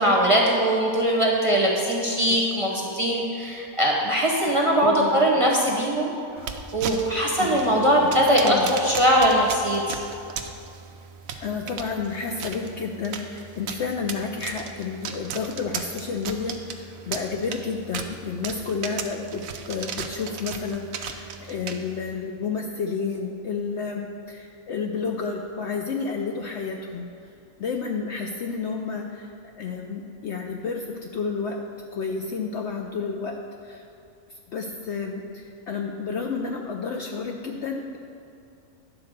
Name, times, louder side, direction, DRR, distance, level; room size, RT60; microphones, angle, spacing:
voice 1, 0.0-6.1 6.7-10.0, equal, 25° right, -2 dB, 0.8 m, -21 dB
voice 2, 4.7-5.3 7.3-8.7 11.4-27.1 27.6-29.3 29.6-31.6 31.9-33.4 33.6-33.8 34.5-38.0, left 5 dB, 65° left, 2 dB, 0.7 m, -31 dB
sound 1, 6.4-22.1, right 6 dB, 70° right, 1.0 m, -37 dB
10.5 x 4.1 x 6.4 m, 2.6 s
omnidirectional pair, 1.5 m